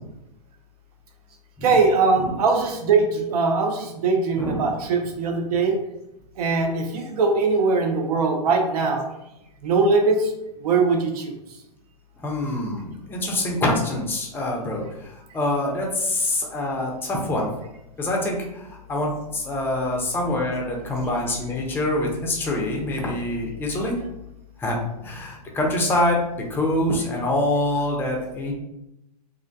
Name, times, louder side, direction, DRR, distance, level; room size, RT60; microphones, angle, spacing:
voice 1, 1.6-5.8 6.4-9.1 9.6-10.3 10.6-11.3, right 4 dB, 65° right, 3 dB, 0.5 m, -21 dB
voice 2, 12.2-12.8 13.1-14.8 15.3-15.9 16.5-16.9 17.3-17.5 18.0-18.3 18.9-19.1 19.5-20.6 20.9-23.9 24.6-24.8 25.6-26.1 26.5-28.5, left 1 dB, 10° left, -1 dB, 0.4 m, -24 dB
2.4 x 2.1 x 2.5 m, 0.88 s
hypercardioid pair, 120°, 21 cm